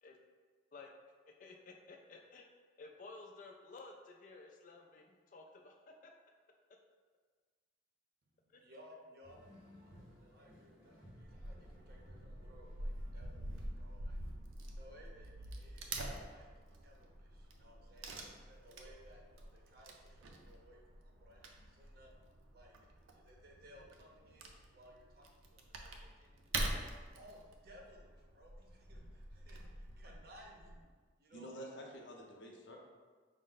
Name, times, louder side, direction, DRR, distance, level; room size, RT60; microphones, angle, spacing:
voice 1, 1.3-2.5 2.8-6.1 8.5-8.6, left 3 dB, 40° left, 2 dB, 0.3 m, -54 dB
voice 2, 8.3-14.2 14.7-16.5 16.8-18.2 18.5-22.1 22.5-26.4 26.8-30.8 31.2-31.6, equal, 50° right, -1 dB, 0.6 m, -61 dB
sound 1, 9.2-14.3, equal, 5° right, 0.8 m, -60 dB
Wood / Tearing, 11.2-30.8, right 2 dB, 90° right, 0.5 m, -46 dB
voice 3, 31.3-32.8, equal, 70° left, 0 dB, 0.7 m, -49 dB
5.2 x 2.1 x 3.8 m, 1.4 s
head